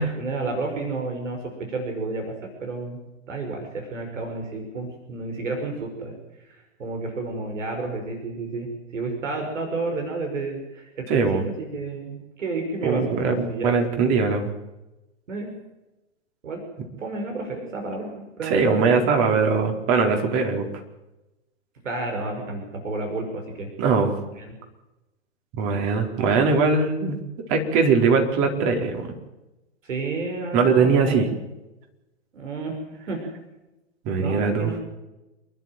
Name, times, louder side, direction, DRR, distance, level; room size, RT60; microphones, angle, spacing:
voice 1, 0.2-1.4 1.7-3.0 3.3-13.8 15.3-15.5 16.4-16.6 17.0-18.8 21.8-23.7 24.3-24.6 29.8-31.3 32.3-33.2 34.2-34.8, right 3 dB, 75° right, 3 dB, 6.0 m, -31 dB
voice 2, 11.1-11.4 12.8-14.5 18.5-20.7 23.8-24.1 25.6-27.2 27.5-29.1 30.5-31.3 34.0-34.7, right 4 dB, 40° right, 4 dB, 4.6 m, -21 dB
28.0 x 12.5 x 9.3 m, 1.0 s
hypercardioid pair, 120°, 38 cm